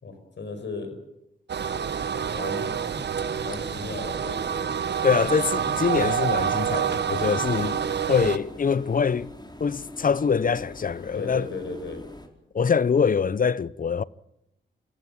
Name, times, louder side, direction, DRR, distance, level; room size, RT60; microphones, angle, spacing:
voice 1, 0.0-1.0 2.3-2.8 3.4-4.7 11.1-12.0, left 4 dB, 65° left, 5.8 m, -35 dB
sound 1, 1.5-8.4, right 7 dB, 60° right, 1.3 m, -28 dB
voice 2, 5.0-7.8 8.1-9.3 9.6-11.5 12.5-14.0, left 6 dB, 45° left, 0.8 m, -24 dB
Keyboard (musical), 5.9-8.1, right 10 dB, 75° right, 2.2 m, -32 dB
sound 2, 6.9-12.3, left 2 dB, 20° left, 4.7 m, -42 dB
27.5 x 15.0 x 8.7 m
cardioid pair, 50°, 20 cm